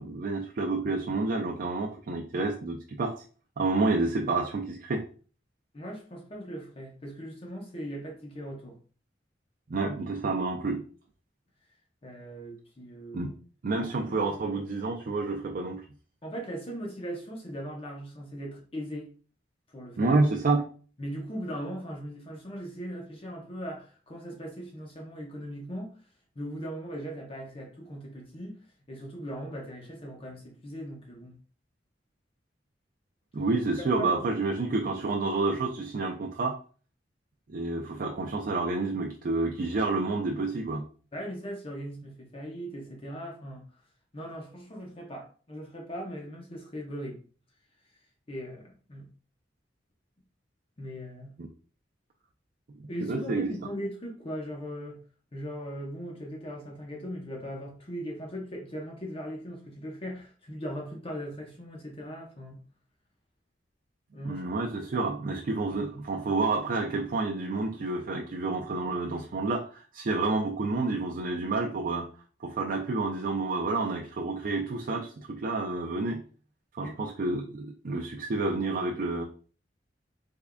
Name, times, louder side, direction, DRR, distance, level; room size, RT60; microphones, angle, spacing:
voice 1, 0.0-3.1 3.6-5.0 9.7-10.8 13.1-13.3 13.6-15.8 20.0-20.6 33.3-36.6 37.5-40.8 51.4-51.5 53.0-53.5 64.2-72.1 72.4-76.2 76.8-79.2, right 3 dB, 50° right, 0.4 m, -29 dB
voice 2, 5.7-8.8 12.0-13.3 13.8-13.9 14.2-14.3 16.2-19.1 19.7-20.2 21.0-25.9 26.4-28.6 28.9-31.4 34.0-34.3 41.1-43.6 44.1-47.2 48.3-49.1 50.8-51.3 52.9-55.0 55.3-62.6 64.1-64.5 76.8-77.0, equal, 30° left, 0.7 m, -39 dB
3.6 x 3.4 x 2.2 m
head